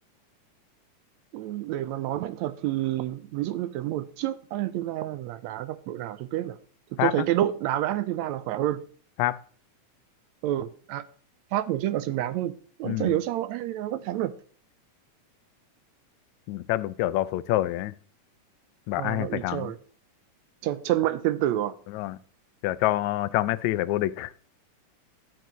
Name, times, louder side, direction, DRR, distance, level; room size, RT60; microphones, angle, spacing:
voice 1, 1.3-6.6 6.9-8.8 10.4-11.0 11.5-14.3 19.0-19.8 20.6-21.7, right 13 dB, 80° right, 1.7 m, -28 dB
voice 2, 16.5-18.0 18.9-19.7 21.9-22.2 22.6-24.3, left 16 dB, 80° left, 1.8 m, -27 dB
12.0 x 9.1 x 3.1 m
omnidirectional pair, 3.6 m